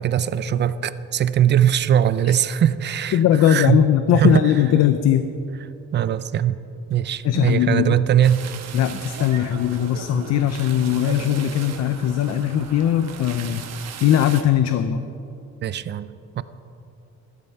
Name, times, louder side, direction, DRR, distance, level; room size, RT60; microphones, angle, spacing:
voice 1, 0.0-3.2 3.4-3.8 4.1-4.4 5.9-6.6 6.9-8.4 15.6-16.4, right 10 dB, 35° right, 14 dB, 0.4 m, -20 dB
voice 2, 3.1-5.3 7.2-7.9 8.7-13.6 14.0-15.0, left 10 dB, 55° left, 10 dB, 0.6 m, -19 dB
sound 1, 8.2-14.4, right 6 dB, 55° right, 1.2 m, -37 dB
14.5 x 12.5 x 5.5 m, 2.7 s
cardioid pair, 175°, 32 cm